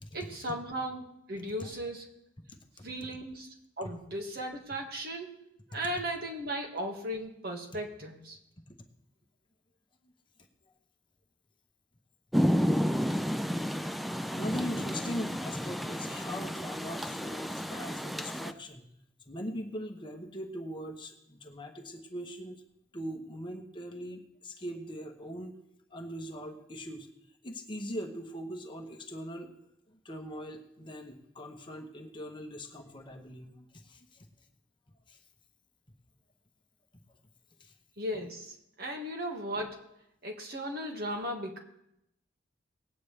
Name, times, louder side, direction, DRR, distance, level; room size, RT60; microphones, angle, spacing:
voice 1, 0.1-2.1 2.8-3.5 3.8-8.4 38.0-39.9 40.2-41.6, equal, 55° right, 2 dB, 1.8 m, -37 dB
voice 2, 2.5-2.9 8.7-8.8 13.9-18.8 19.3-22.6 22.9-25.6 25.9-27.1 27.4-29.5 29.9-34.3 35.1-35.2 37.6-37.7, equal, 25° left, 3 dB, 1.0 m, -41 dB
Rain, 12.3-18.5, equal, ahead, 0.3 m, -31 dB
19.0 x 8.9 x 3.3 m, 0.80 s
head